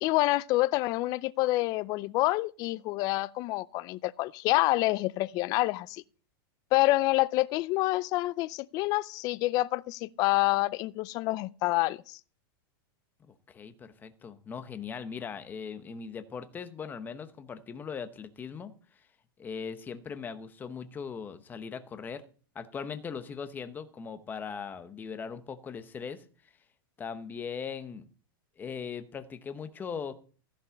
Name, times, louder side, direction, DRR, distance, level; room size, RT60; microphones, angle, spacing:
voice 1, 0.0-6.0 6.7-12.2, left 19 dB, 30° left, 0.4 m, -27 dB
voice 2, 13.2-18.7 19.4-22.2 22.5-26.2 27.0-28.0 28.6-30.2, left 6 dB, 15° left, 0.9 m, -39 dB
15.0 x 5.4 x 7.2 m
supercardioid pair, 155°, 13 cm